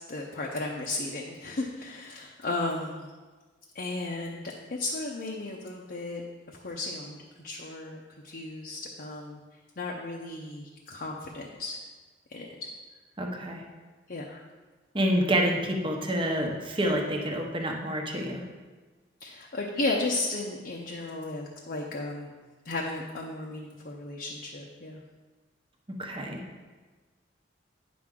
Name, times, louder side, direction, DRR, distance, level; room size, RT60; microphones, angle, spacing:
voice 1, 0.1-3.1 3.7-6.2 6.5-7.2 7.4-9.4 9.8-11.8 12.3-12.7 14.1-14.4 19.2-22.3 22.6-25.0, left 2 dB, 55° left, -1 dB, 0.7 m, -34 dB
voice 2, 13.2-13.6 14.9-18.4 26.0-26.4, equal, 30° right, 1 dB, 0.9 m, -28 dB
9.2 x 6.1 x 3.7 m, 1.3 s
head